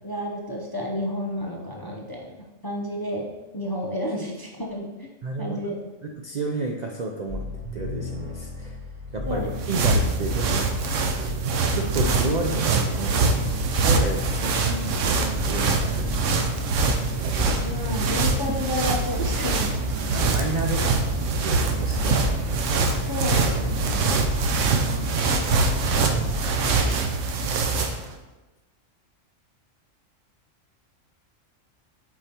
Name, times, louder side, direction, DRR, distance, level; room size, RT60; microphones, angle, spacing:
voice 1, 0.0-3.3 3.5-5.1 5.4-5.7 9.3-9.5 17.6-19.9 23.1-24.2, left 1 dB, 25° left, -1 dB, 0.5 m, -31 dB
voice 2, 5.2-5.6 6.2-7.5 7.7-8.8 9.1-10.7 11.7-16.6 17.2-17.6 20.1-22.6, right 2 dB, 55° right, 1 dB, 0.5 m, -32 dB
sound 1, 7.3-26.7, left 2 dB, 35° right, 1.2 m, -33 dB
sound 2, 9.3-28.1, right 4 dB, 80° right, 1.0 m, -24 dB
8.6 x 4.6 x 2.9 m, 1.1 s
omnidirectional pair, 1.3 m